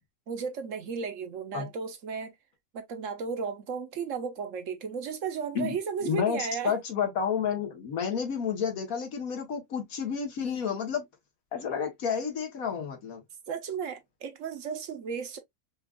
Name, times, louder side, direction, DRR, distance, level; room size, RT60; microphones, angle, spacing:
voice 1, 0.3-2.4 2.7-6.8 13.5-15.4, right 6 dB, 65° right, 1.1 m, -34 dB
voice 2, 6.0-11.0 11.5-13.2, left 7 dB, 80° left, 1.6 m, -30 dB
5.1 x 2.4 x 2.3 m
omnidirectional pair, 1.5 m